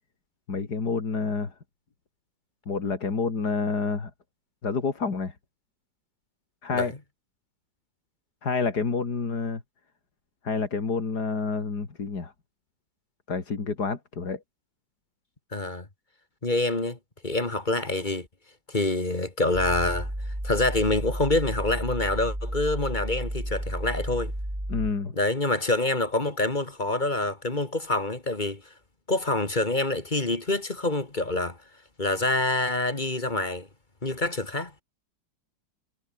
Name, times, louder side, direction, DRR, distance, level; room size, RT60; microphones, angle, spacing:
voice 1, 0.5-1.5 2.7-4.1 4.6-5.3 6.6-6.9 8.4-9.6 10.4-12.3 13.3-14.4 24.7-25.1, left 4 dB, 55° left, 3.3 m, -28 dB
voice 2, 15.5-15.9 16.4-17.0 17.2-18.3 18.7-20.1 20.4-24.3 25.2-28.6 29.1-31.6 32.0-33.7 34.0-34.7, left 2 dB, 25° left, 2.5 m, -26 dB
sound 1, 19.5-24.9, right 1 dB, 10° right, 5.6 m, -32 dB
omnidirectional pair, 2.0 m